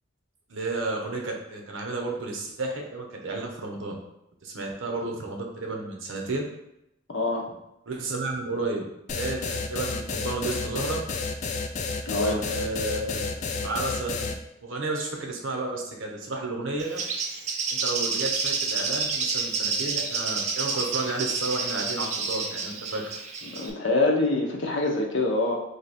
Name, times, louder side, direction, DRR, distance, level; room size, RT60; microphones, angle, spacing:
voice 1, 0.5-4.0 4.4-6.4 7.5-7.6 7.9-8.8 9.1-11.1 12.1-14.3 14.6-17.0 17.7-23.1, right 2 dB, 80° right, 1 dB, 0.8 m, -32 dB
voice 2, 7.1-7.5 12.0-12.4 23.4-25.6, left 2 dB, 70° left, 0 dB, 0.8 m, -25 dB
sound 1, 9.1-14.3, left 4 dB, 35° left, 0.3 m, -30 dB
Bird, 16.8-23.7, right 4 dB, 35° right, 0.4 m, -29 dB
3.2 x 2.7 x 4.1 m, 0.83 s
head